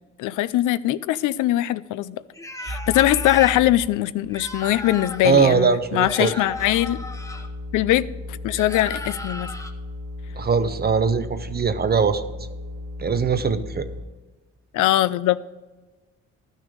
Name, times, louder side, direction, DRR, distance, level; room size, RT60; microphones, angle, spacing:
voice 1, 0.2-2.2 2.7-7.0 7.7-9.5 14.7-15.4, left 15 dB, 85° left, 0.4 m, -21 dB
sound 1, 2.3-3.6 4.3-5.3 6.0-7.5 8.5-9.7, left 2 dB, 10° left, 1.0 m, -35 dB
sound 2, 2.7-3.9 4.2-14.0, left 2 dB, 75° right, 2.5 m, -36 dB
voice 2, 5.2-6.3 10.4-12.2 13.0-13.9, right 5 dB, 35° right, 0.6 m, -21 dB
12.0 x 6.4 x 5.0 m
cardioid pair, 90°, 30 cm